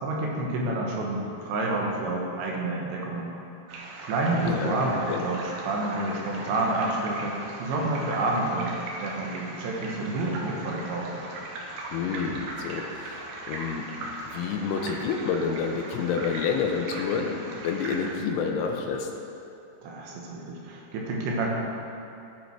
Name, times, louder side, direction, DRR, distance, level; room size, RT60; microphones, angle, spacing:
voice 1, 0.0-3.3 4.0-5.4 5.7-8.8 9.0-11.2 19.8-21.5, right 2 dB, 90° right, -2 dB, 3.6 m, -29 dB
sound 1, 3.7-18.1, right 2 dB, 65° right, 2.5 m, -39 dB
voice 2, 4.4-5.2 11.9-19.1, left 6 dB, 85° left, 3 dB, 2.7 m, -29 dB
16.5 x 5.8 x 4.6 m, 2.8 s
omnidirectional pair, 4.9 m